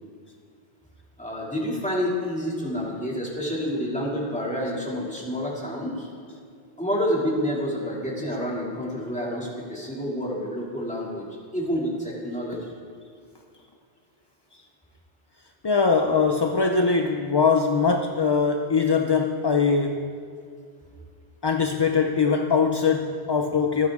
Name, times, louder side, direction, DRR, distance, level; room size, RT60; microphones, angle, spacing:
voice 1, 1.2-6.1 6.8-11.2 11.5-12.7, equal, 5° left, -4 dB, 2.6 m, -28 dB
voice 2, 15.6-20.1 21.4-23.9, left 5 dB, 35° left, 4 dB, 0.5 m, -22 dB
26.0 x 9.7 x 3.7 m, 2.2 s
omnidirectional pair, 1.1 m